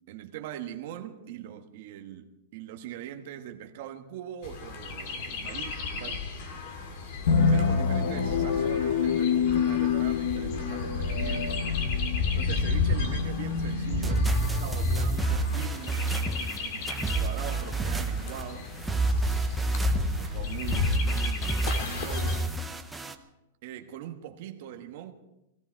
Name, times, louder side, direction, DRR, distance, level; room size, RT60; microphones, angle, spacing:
voice 1, 0.1-2.3 2.5-6.2 7.5-18.7 19.1-22.4 23.6-25.1, right 11 dB, 40° right, 5 dB, 1.3 m, -42 dB
Chirp tweet, 4.4-22.4, left 4 dB, 35° left, 2.0 m, -33 dB
sound 1, 7.3-16.0, left 6 dB, 60° left, 1.2 m, -28 dB
sound 2, 13.9-23.2, right 3 dB, 5° right, 0.6 m, -29 dB
16.5 x 16.5 x 4.6 m, 0.91 s
supercardioid pair, 180°, 0 cm